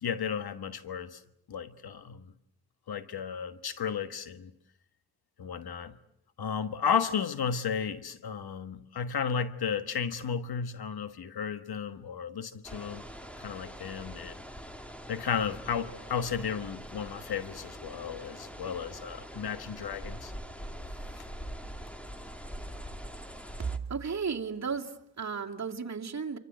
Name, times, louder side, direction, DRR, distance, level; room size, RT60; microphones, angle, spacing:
voice 1, 0.0-1.2 1.5-2.3 2.9-4.5 5.4-6.0 6.4-13.0 13.4-14.3 15.1-20.3 21.2-21.3, left 7 dB, 80° left, 1.5 m, -33 dB
sound 1, 12.6-23.8, equal, 5° left, 2.5 m, -43 dB
voice 2, 23.9-26.4, right 5 dB, 45° right, 2.7 m, -34 dB
26.5 x 25.0 x 7.9 m
cardioid pair, 75°, 37 cm